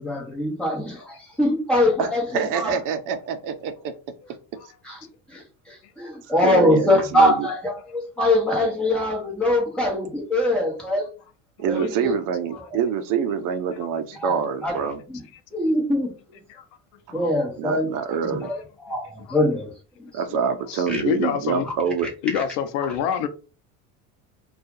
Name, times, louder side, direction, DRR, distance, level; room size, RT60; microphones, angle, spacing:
voice 1, 0.0-2.8 4.8-5.0 5.3-11.1 11.7-12.1 14.2-14.7 15.1-15.2 15.5-16.1 17.1-17.9 18.2-19.7 20.9-21.0 21.6-21.7 22.3-22.4, left 1 dB, 5° left, 1.1 m, -23 dB
voice 2, 2.0-3.9 6.4-7.5 11.6-15.0 17.6-18.5 20.1-22.1, right 7 dB, 60° right, 0.6 m, -26 dB
voice 3, 20.7-21.7 22.2-23.3, left 8 dB, 80° left, 0.6 m, -26 dB
2.7 x 2.4 x 3.7 m
cardioid pair, 155°, 36 cm